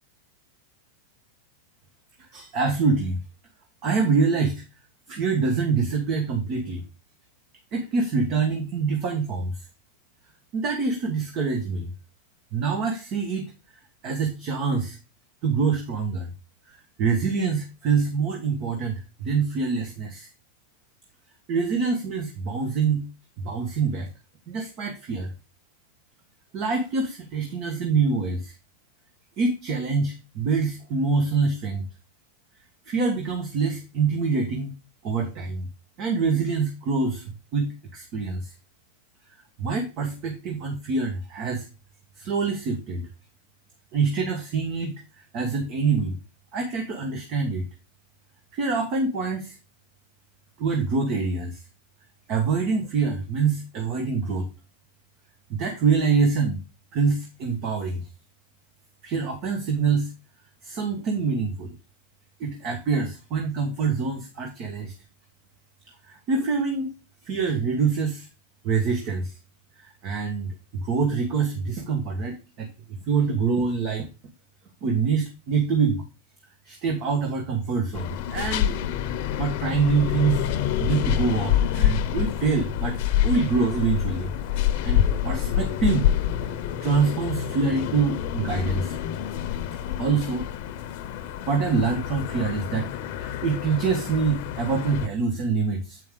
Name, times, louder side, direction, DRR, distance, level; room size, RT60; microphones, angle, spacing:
voice 1, 2.3-3.2 3.8-4.6 5.1-6.8 7.7-9.6 10.5-11.9 12.5-13.5 14.0-15.0 15.4-16.3 16.7-20.3 21.5-23.1 23.4-24.1 24.5-25.3 26.5-28.5 29.4-31.8 32.8-34.7 35.0-35.7 36.0-38.5 39.6-41.7 42.2-43.1 43.9-46.2 46.5-47.6 48.5-49.6 50.6-51.6 52.3-54.5 55.5-56.6 56.9-58.1 59.0-60.1 60.6-61.7 62.4-64.9 66.0-66.9 67.2-68.3 68.6-69.4 69.7-72.7 73.1-74.1 74.8-76.0 76.6-78.8 79.4-80.5 80.8-83.0 83.2-84.3 84.6-86.1 86.4-86.5 86.8-89.0 89.9-90.5 91.5-92.9 93.2-96.0, right 4 dB, 45° right, 4 dB, 1.5 m, -25 dB
sound 1, 77.9-95.1, left 10 dB, 55° left, 0.8 m, -27 dB
7.9 x 5.4 x 3.7 m, 0.30 s
hypercardioid pair, 120°, 0 cm